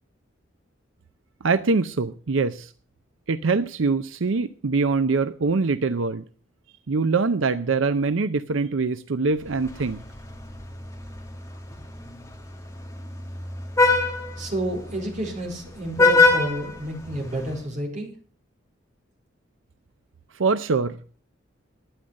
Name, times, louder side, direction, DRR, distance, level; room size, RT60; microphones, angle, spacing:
voice 1, 1.4-2.7 3.3-6.2 6.9-10.0 20.3-21.2, right 4 dB, 80° right, 11 dB, 0.6 m, -23 dB
Vehicle horn car horn honking, 9.5-17.6, left 3 dB, 15° left, 1.9 m, -25 dB
voice 2, 14.4-18.1, right 1 dB, 35° right, 0 dB, 4.5 m, -30 dB
12.5 x 9.5 x 6.4 m, 0.43 s
head